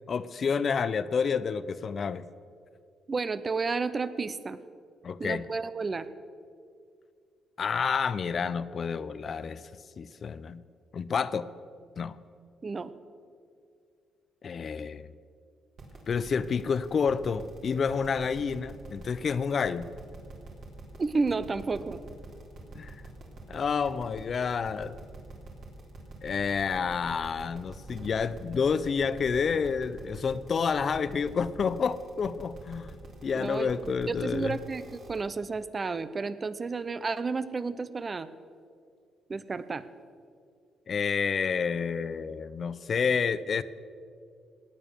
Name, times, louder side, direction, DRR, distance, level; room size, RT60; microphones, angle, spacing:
voice 1, 0.1-2.3 5.0-5.5 7.6-9.6 10.0-10.6 10.9-11.5 12.0-12.2 14.4-15.1 16.1-19.9 22.7-23.0 23.5-25.0 26.2-32.9 33.2-34.6 40.9-43.6, left 6 dB, 50° left, 15 dB, 0.6 m, -29 dB
voice 2, 3.1-4.6 5.2-6.1 12.6-12.9 21.0-22.0 33.3-38.3 39.3-39.8, right 4 dB, 35° right, 14 dB, 0.7 m, -31 dB
sound 1, 15.8-35.3, right 2 dB, 60° right, 3.6 m, -46 dB
18.0 x 9.0 x 6.9 m, 2.2 s
cardioid pair, 90°, 0 cm